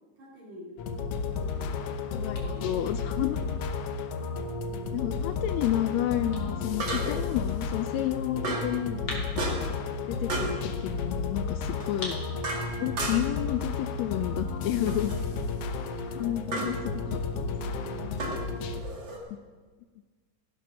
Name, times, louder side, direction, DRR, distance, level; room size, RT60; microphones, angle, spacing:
voice 1, 0.2-0.8 1.3-3.5 4.5-5.4 15.3-15.5 16.0-16.3 17.4-18.8, equal, 65° right, -6 dB, 4.1 m, -49 dB
sound 1, 0.8-18.8, left 4 dB, 65° left, 1.5 m, -33 dB
sound 2, 1.5-15.0, left 2 dB, 40° left, 3.6 m, -48 dB
voice 2, 2.1-3.4 4.9-9.7 10.1-12.4 12.8-15.1 16.1-17.5, left 12 dB, 85° left, 10 dB, 1.5 m, -31 dB
sound 3, 3.1-3.2 6.8-7.3 8.4-8.8 9.4-9.8 10.3-10.6 11.8-13.4 14.9-15.2 16.5-16.8 18.2-19.2, right 2 dB, 40° right, 2.4 m, -34 dB
15.5 x 11.0 x 6.2 m, 1.4 s
omnidirectional pair, 3.6 m